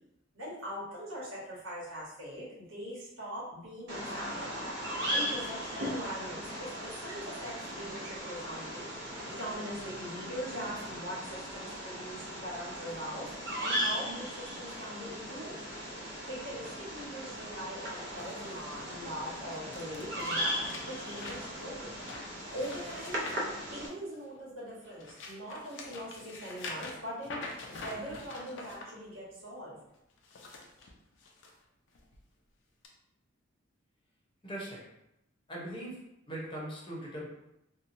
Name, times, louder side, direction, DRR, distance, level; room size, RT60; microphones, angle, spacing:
voice 1, 0.3-4.6 5.1-8.9 9.2-15.6 16.3-21.9 22.5-23.2 23.7-29.8, equal, 90° right, -7 dB, 1.1 m, -42 dB
Bird vocalization bird call bird song, 3.9-23.9, equal, 65° right, 0.7 m, -38 dB
sound 1, 18.2-24.3 24.8-28.8 30.1-31.5 31.9-32.2 32.8-32.9, left 2 dB, 65° left, 0.5 m, -46 dB
voice 2, 34.4-34.8 35.5-36.0 36.3-37.3, right 1 dB, 25° left, -4 dB, 0.7 m, -40 dB
2.8 x 2.2 x 2.6 m, 0.85 s
head